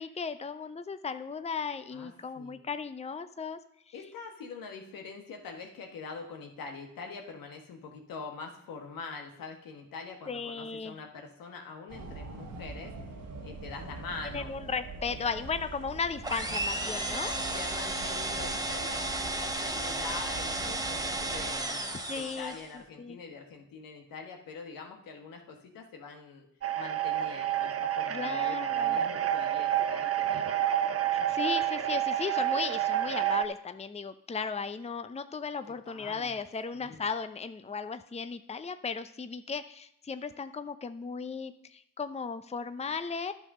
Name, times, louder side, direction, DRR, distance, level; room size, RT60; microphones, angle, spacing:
voice 1, 0.0-3.6 10.3-11.0 14.2-17.3 21.9-22.5 23.0-23.2 28.1-29.0 31.1-43.3, left 5 dB, 20° left, 11 dB, 0.6 m, -36 dB
voice 2, 1.9-2.6 3.9-12.9 13.4-14.5 15.1-15.3 17.2-26.5 26.7-31.3 35.9-36.3 36.7-37.0, left 4 dB, 80° left, 3 dB, 1.4 m, -44 dB
sound 1, 11.9-21.6, right 3 dB, 75° right, 1.4 m, -44 dB
sound 2, 16.2-22.7, right 2 dB, 10° right, 1.2 m, -33 dB
sound 3, 26.6-33.5, right 11 dB, 45° right, 0.7 m, -29 dB
11.0 x 5.8 x 5.4 m, 0.73 s
hypercardioid pair, 40°, 34 cm